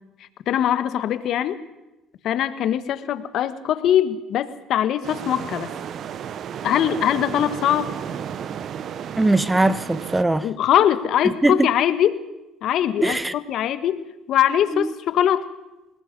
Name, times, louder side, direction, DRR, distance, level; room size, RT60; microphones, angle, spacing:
voice 1, 0.5-1.6 2.2-5.7 6.6-7.9 10.4-12.2 12.6-13.2 13.5-15.5, left 10 dB, 60° left, 1.4 m, -22 dB
sound 1, 5.0-10.2, right 8 dB, 55° right, 1.0 m, -33 dB
voice 2, 9.2-10.5 11.2-11.7 13.0-13.3 14.7-14.9, right 2 dB, 10° right, 0.8 m, -20 dB
26.5 x 19.5 x 5.4 m
cardioid pair, 100°, 0 cm